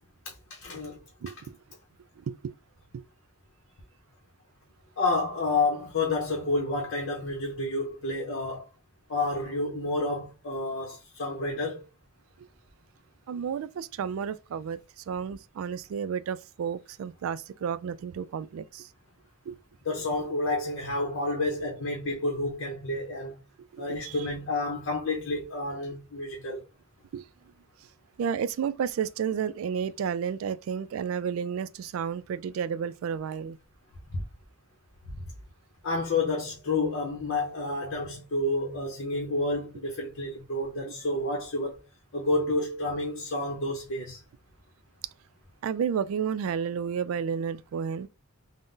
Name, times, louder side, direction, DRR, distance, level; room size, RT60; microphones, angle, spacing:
voice 1, 0.2-1.0 1.3-1.4 5.0-8.7 9.1-11.8 19.8-23.4 23.8-26.6 34.1-34.2 35.1-35.3 35.8-41.8 42.1-44.2, left 2 dB, 60° left, 0.7 m, -30 dB
voice 2, 1.2-1.6 2.2-2.5 2.9-3.0 12.4-12.5 13.3-18.9 19.5-19.6 23.7-24.2 27.1-27.2 28.2-33.6 40.8-40.9 45.6-48.1, right 7 dB, 70° right, 0.3 m, -32 dB
3.7 x 2.1 x 2.5 m
head